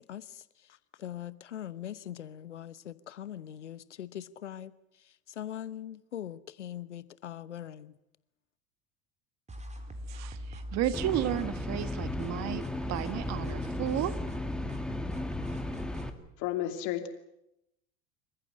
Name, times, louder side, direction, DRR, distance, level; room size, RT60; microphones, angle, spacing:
voice 1, 0.0-8.0, left 11 dB, 85° left, 17 dB, 1.0 m, -42 dB
sound 1, 9.5-16.1, equal, 20° right, 4.1 m, -41 dB
voice 2, 10.1-14.2, right 12 dB, 50° right, 13 dB, 1.6 m, -33 dB
sound 2, 10.9-16.1, left 1 dB, ahead, 2.2 m, -36 dB
voice 3, 16.4-17.1, left 12 dB, 55° left, 7 dB, 2.9 m, -32 dB
27.5 x 15.0 x 9.9 m, 0.83 s
hypercardioid pair, 75°, 35 cm